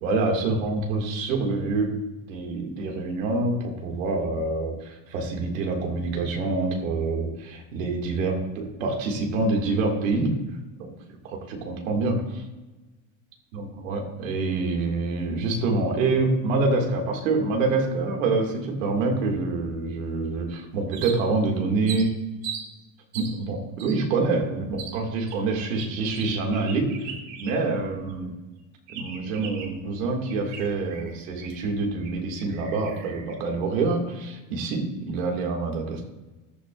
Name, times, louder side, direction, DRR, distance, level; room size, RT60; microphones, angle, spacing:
voice 1, 0.0-1.9 2.3-10.3 10.8-10.9 11.2-12.4 13.5-22.1 23.1-26.9 27.4-28.3 28.9-36.0, right 3 dB, 90° right, 1 dB, 2.3 m, -26 dB
sound 1, 20.9-21.5 21.9-22.7 23.1-23.3 23.8-23.9 24.8-25.0 25.3-27.8 28.1-28.2 28.9-29.8 30.3-31.7 32.0-32.1 32.4-33.3, right 7 dB, 65° right, 2.4 m, -39 dB
14.0 x 8.9 x 2.5 m, 1.1 s
supercardioid pair, 110°, 38 cm